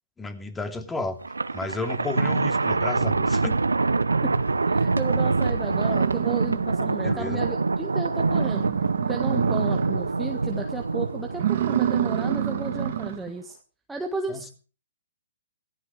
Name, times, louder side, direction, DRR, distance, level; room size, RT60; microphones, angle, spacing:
voice 1, 0.2-1.2 1.5-3.5 7.0-7.5 14.3-14.5, left 3 dB, 10° left, 6 dB, 3.0 m, -32 dB
Thunder, 1.2-13.0, right 3 dB, 80° right, 1.1 m, -25 dB
voice 2, 4.6-8.6 9.1-13.6 13.9-14.5, right 3 dB, 5° right, 3 dB, 1.6 m, -33 dB
sound 1, 5.2-5.3 5.6-7.0 7.4-7.5 7.9-8.0 8.2-10.1 10.5-10.8 11.3-13.3, right 11 dB, 50° right, 2.3 m, -28 dB
17.5 x 15.0 x 4.9 m, 0.38 s
figure-of-eight pair, 125°, 0 cm